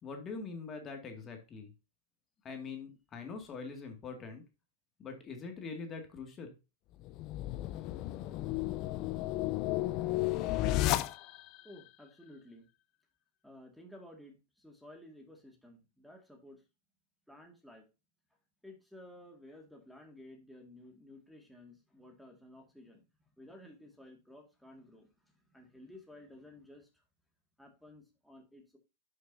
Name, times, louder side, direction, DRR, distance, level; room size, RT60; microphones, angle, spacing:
voice 1, 0.0-1.7 2.4-4.4 5.0-6.5, left 4 dB, 30° left, 4 dB, 2.1 m, -43 dB
sound 1, 7.0-11.6, left 15 dB, 45° left, 0.6 m, -33 dB
voice 2, 11.6-12.7 13.4-16.6 17.3-17.9 18.6-23.0 23.4-27.0 27.6-28.8, left 1 dB, ahead, 0 dB, 2.0 m, -54 dB
11.0 x 6.5 x 2.7 m, 0.28 s
hypercardioid pair, 105°, 0 cm